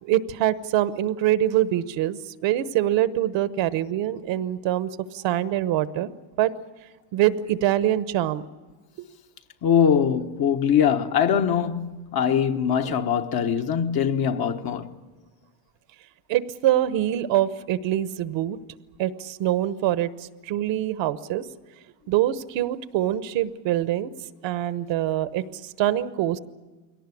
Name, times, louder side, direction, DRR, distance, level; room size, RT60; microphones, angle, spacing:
voice 1, 0.0-6.1 6.4-6.5 7.1-8.4 12.8-12.9 16.3-18.6 19.0-21.4 22.1-24.1 24.4-25.4 25.8-26.4, right 12 dB, 60° right, 1.1 m, -24 dB
voice 2, 9.6-15.0, left 8 dB, 45° left, 1.3 m, -22 dB
22.0 x 18.0 x 9.9 m
supercardioid pair, 105°, 50 cm